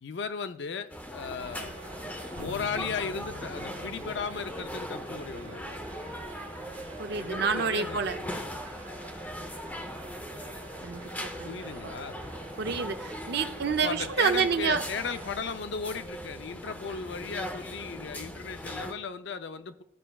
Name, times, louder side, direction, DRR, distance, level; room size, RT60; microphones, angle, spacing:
voice 1, 0.0-1.9 2.4-5.8 7.1-8.5 11.4-12.2 13.8-19.8, left 5 dB, 60° left, 0.5 m, -36 dB
sound 1, 0.9-18.9, equal, 10° left, 0.6 m, -40 dB
sound 2, 1.4-15.3, right 3 dB, 90° right, 1.6 m, -48 dB
sound 3, 2.4-6.1, left 3 dB, 75° left, 2.3 m, -48 dB
voice 2, 7.0-8.2 10.8-11.9 12.6-14.8, right 5 dB, 55° right, 0.5 m, -29 dB
13.5 x 5.5 x 2.3 m
head